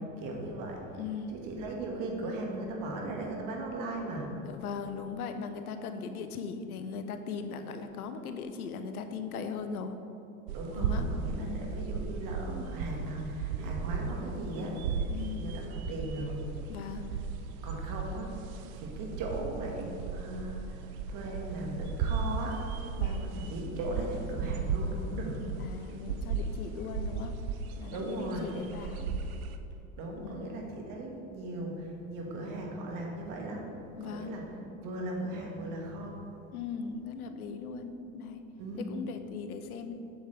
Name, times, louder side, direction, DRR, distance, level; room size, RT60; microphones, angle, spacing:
voice 1, 0.2-1.0 1.3-4.3 10.5-14.8 15.3-16.4 17.6-25.4 27.9-28.5 30.0-33.7 34.0-34.5 34.8-36.2 38.6-38.9, right 2 dB, 50° right, 0 dB, 1.7 m, -38 dB
voice 2, 1.0-1.4 4.4-10.0 10.8-11.1 11.4-11.7 15.1-15.5 16.7-17.2 23.0-23.2 25.6-27.4 27.8-29.2 30.2-30.6 34.0-34.4 36.5-38.4 38.8-39.9, left 5 dB, 90° left, 8 dB, 0.7 m, -39 dB
sound 1, 10.5-29.6, right 5 dB, 75° right, 0.7 m, -36 dB
7.9 x 7.0 x 3.3 m, 3.0 s
hypercardioid pair, 100°, 42 cm